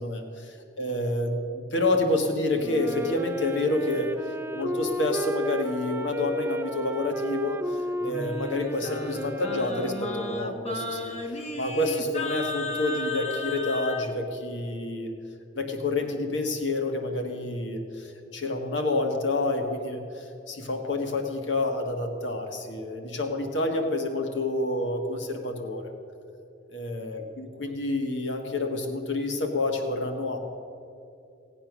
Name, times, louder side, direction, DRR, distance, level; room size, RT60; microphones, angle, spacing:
voice 1, 0.0-4.1 4.5-11.1 11.5-15.1 15.5-25.9 26.7-30.4, left 2 dB, 75° left, 4 dB, 1.5 m, -28 dB
Wind instrument woodwind instrument, 2.6-11.0, right 1 dB, 10° right, 0.4 m, -34 dB
Singing, 8.0-14.1, left 2 dB, 35° left, 0.9 m, -34 dB
17.0 x 8.8 x 6.2 m, 2.6 s
head